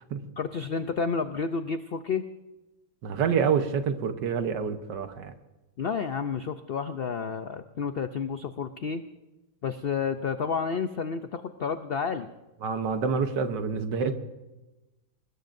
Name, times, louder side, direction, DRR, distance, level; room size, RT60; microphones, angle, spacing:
voice 1, 0.4-2.2 5.8-9.0 9.6-12.3, left 5 dB, 80° left, 9 dB, 0.5 m, -30 dB
voice 2, 3.0-5.3 12.6-14.1, right 6 dB, 85° right, 8 dB, 1.7 m, -27 dB
24.5 x 20.0 x 2.6 m, 1.1 s
omnidirectional pair, 1.8 m